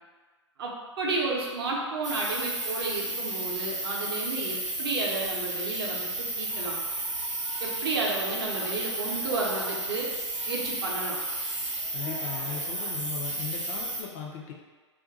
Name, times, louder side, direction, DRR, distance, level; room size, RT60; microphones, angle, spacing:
voice 1, 1.0-6.1 6.4-6.8 7.6-10.1 10.5-11.2, right 3 dB, 55° right, -2 dB, 0.7 m, -31 dB
sound 1, 2.0-14.0, right 2 dB, 90° right, 0.7 m, -33 dB
Singing, 6.0-12.9, left 1 dB, 70° left, 0.9 m, -46 dB
voice 2, 11.9-14.5, left 7 dB, 30° left, 0 dB, 0.3 m, -38 dB
2.5 x 2.2 x 3.8 m, 1.4 s
figure-of-eight pair, 115°, 16 cm